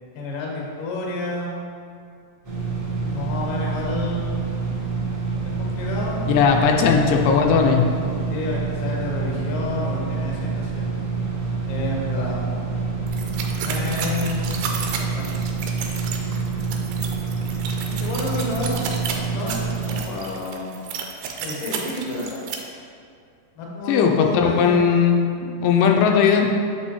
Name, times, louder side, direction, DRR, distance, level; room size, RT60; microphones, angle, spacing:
voice 1, 0.1-1.6 3.1-4.5 5.4-6.3 6.6-7.2 8.3-10.9 11.7-12.4 13.6-14.5 15.0-15.4 17.9-19.0 19.3-20.8 21.4-22.4 23.6-24.9, left 2 dB, 65° left, -2 dB, 1.5 m, -30 dB
sound 1, 2.4-20.0, right 4 dB, 40° right, 1.3 m, -27 dB
voice 2, 6.3-7.9 23.9-26.5, left 6 dB, 85° left, 2 dB, 2.2 m, -18 dB
sound 2, 13.1-22.6, right 6 dB, 90° right, 2.3 m, -32 dB
8.4 x 5.2 x 3.0 m, 2.3 s
omnidirectional pair, 4.0 m